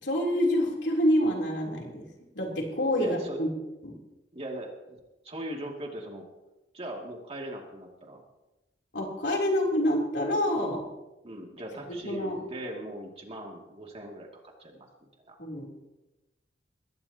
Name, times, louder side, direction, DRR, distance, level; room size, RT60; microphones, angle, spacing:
voice 1, 0.0-2.0 2.3-3.5 3.8-4.0 8.9-10.9 11.9-12.4 15.4-15.7, equal, 85° left, -1 dB, 3.4 m, -27 dB
voice 2, 2.9-3.4 4.3-5.0 5.2-6.3 6.7-8.2 11.2-14.9 15.3-15.4, right 1 dB, 35° right, 1 dB, 2.4 m, -40 dB
20.5 x 17.0 x 2.9 m, 1.0 s
head